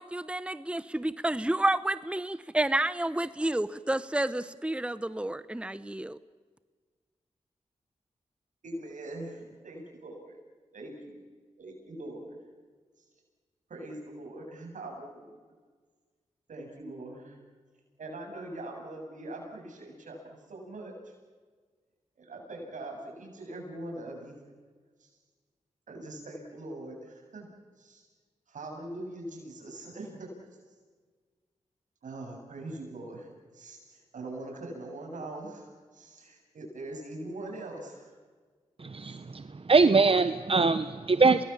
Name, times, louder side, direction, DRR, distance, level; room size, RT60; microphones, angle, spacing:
voice 1, 0.0-6.2, right 1 dB, 10° right, 15 dB, 0.9 m, -30 dB
voice 2, 8.6-10.4 10.7-11.2 11.6-12.4 13.7-15.4 16.5-17.4 18.0-21.1 22.2-24.4 25.0-25.1 25.9-27.4 27.8-28.1 28.5-30.3 32.0-33.3 33.5-38.1 39.0-39.2, right 2 dB, 80° right, 1 dB, 7.8 m, -42 dB
voice 3, 38.9-39.4 39.7-41.4, right 4 dB, 45° right, 11 dB, 1.1 m, -22 dB
28.0 x 20.0 x 7.4 m, 1.5 s
cardioid pair, 45°, 13 cm